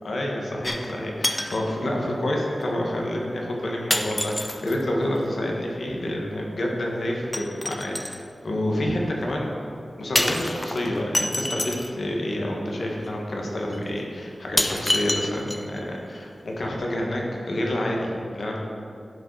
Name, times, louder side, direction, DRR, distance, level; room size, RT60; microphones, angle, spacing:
voice 1, 0.0-8.0 8.4-9.5 10.0-18.6, left 1 dB, 75° left, -1 dB, 1.4 m, -28 dB
sound 1, 0.6-1.0 1.2-1.6 2.6-2.7 3.9-4.8 7.3-8.2 10.2-11.9 13.0-13.1 13.7-13.8 14.6-15.8 16.2-16.3, left 1 dB, 20° left, 0.5 m, -27 dB
11.0 x 5.1 x 4.7 m, 2.6 s
wide cardioid pair, 100°, 0 cm